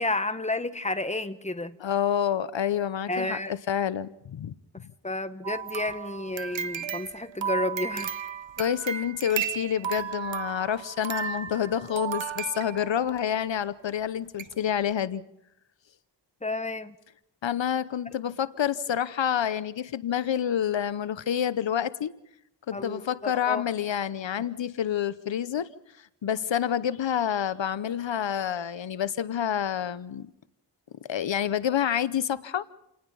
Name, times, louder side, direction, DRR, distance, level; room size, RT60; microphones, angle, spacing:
voice 1, 0.0-1.8 3.1-3.5 5.0-8.1 16.4-16.9 22.7-23.6, left 2 dB, 15° left, 11 dB, 1.4 m, -31 dB
voice 2, 1.8-4.5 8.6-15.2 17.4-22.1 22.7-25.7 26.0-30.3 31.1-32.6, left 9 dB, 80° left, 16 dB, 0.8 m, -28 dB
sound 1, 5.4-13.2 13.9-14.0 14.4-14.5 14.9-15.0, right 8 dB, 85° right, 1.0 m, -34 dB
28.5 x 19.0 x 5.5 m, 0.80 s
wide cardioid pair, 60°, 44 cm